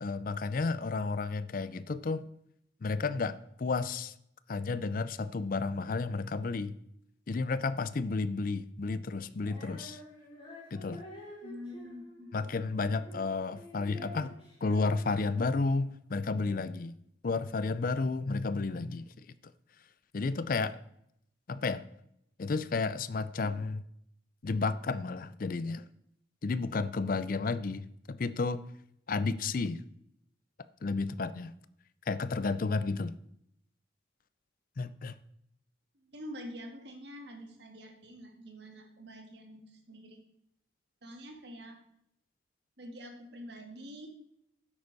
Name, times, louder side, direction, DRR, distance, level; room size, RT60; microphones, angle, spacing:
voice 1, 0.0-2.2 2.8-4.1 4.5-6.7 7.3-10.0 10.7-11.0 12.3-14.3 14.6-16.9 17.2-19.1 20.1-20.8 21.5-21.8 22.4-23.8 24.4-25.9 26.4-28.6 29.1-29.8 30.8-31.5 32.1-33.1 34.8-35.2, left 3 dB, 45° left, 15 dB, 0.4 m, -32 dB
Female singing, 9.4-15.8, left 1 dB, 30° left, 3.8 m, -50 dB
voice 2, 11.4-12.3 36.0-40.2 41.0-41.8 42.8-44.1, equal, 55° right, 3 dB, 1.8 m, -46 dB
10.5 x 8.1 x 4.1 m, 0.75 s
head